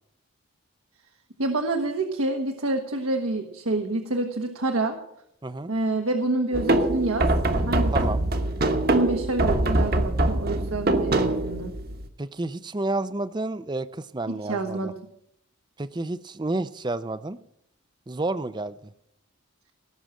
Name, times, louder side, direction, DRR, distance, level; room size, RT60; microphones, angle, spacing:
voice 1, 1.4-5.0 5.7-7.3 7.7-8.0 8.9-11.7 14.3-14.9, right 2 dB, 75° right, 3 dB, 1.2 m, -27 dB
sound 1, 6.5-12.1, right 2 dB, 45° right, 1.1 m, -23 dB
voice 2, 7.9-8.2 12.2-14.9 15.8-17.4 18.1-18.9, right 2 dB, 20° right, 15 dB, 0.5 m, -30 dB
18.0 x 6.2 x 7.6 m, 0.75 s
head